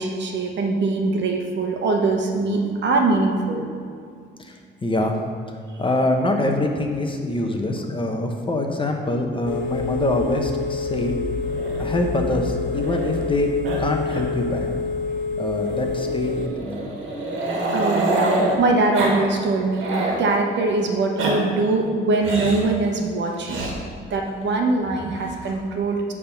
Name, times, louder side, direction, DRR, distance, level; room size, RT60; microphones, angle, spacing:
voice 1, 0.0-3.6 17.7-23.7 24.1-26.1, right 3 dB, 65° right, 2 dB, 1.1 m, -22 dB
voice 2, 4.8-5.2 5.8-11.1 11.8-13.5 13.8-14.7 15.4-17.0, left 1 dB, 25° left, 3 dB, 1.0 m, -24 dB
Telephone, 9.5-16.5, left 4 dB, 80° left, 0.6 m, -27 dB
Growling, 11.5-13.4 13.6-13.8 14.1-14.2 14.6-14.7 15.7-18.5 18.9-19.2 19.5-20.2 20.9-21.3 22.2-22.7 23.4-23.7 24.9-25.5, right 2 dB, 80° right, 1.5 m, -27 dB
9.4 x 3.7 x 5.9 m, 2.2 s
cardioid pair, 90°, 20 cm